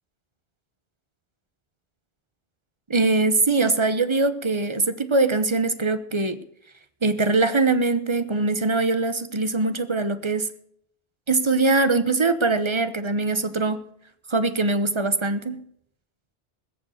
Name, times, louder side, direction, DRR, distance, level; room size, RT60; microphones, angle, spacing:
voice 1, 2.9-6.4 7.0-10.5 11.3-13.8 14.3-15.6, right 3 dB, 30° right, 11 dB, 0.9 m, -22 dB
20.5 x 7.3 x 6.5 m, 0.69 s
omnidirectional pair, 1.1 m